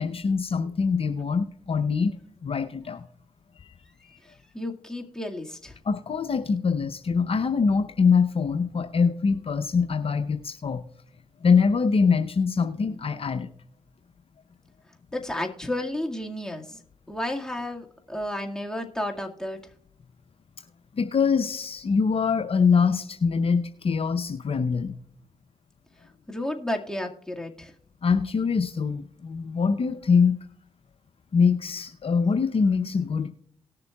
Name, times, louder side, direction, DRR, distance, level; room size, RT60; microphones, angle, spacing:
voice 1, 0.0-2.2 2.4-3.0 3.6-3.7 4.0-4.2 5.9-10.8 11.4-13.5 20.9-24.9 28.0-30.3 31.3-33.3, left 5 dB, 50° left, 7 dB, 0.7 m, -24 dB
voice 2, 4.0-5.7 15.1-16.8 17.1-19.6 26.0-27.7, left 1 dB, 5° left, 1 dB, 1.8 m, -32 dB
18.5 x 6.7 x 2.3 m, 0.66 s
supercardioid pair, 45°, 12 cm